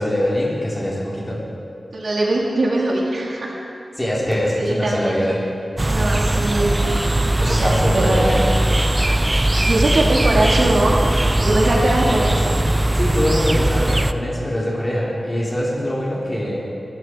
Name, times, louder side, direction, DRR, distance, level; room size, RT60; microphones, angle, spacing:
voice 1, 0.0-1.4 4.0-5.4 7.4-8.5 12.9-16.7, equal, 20° left, -5 dB, 4.2 m, -23 dB
voice 2, 1.9-3.5 4.6-5.2 5.8-6.8 7.5-8.4 9.7-11.0 11.4-12.5, right 2 dB, 70° right, -3 dB, 2.9 m, -21 dB
sound 1, 5.8-14.1, right 1 dB, 20° right, 0.5 m, -19 dB
22.5 x 13.0 x 4.8 m, 2.7 s
wide cardioid pair, 105°, 0 cm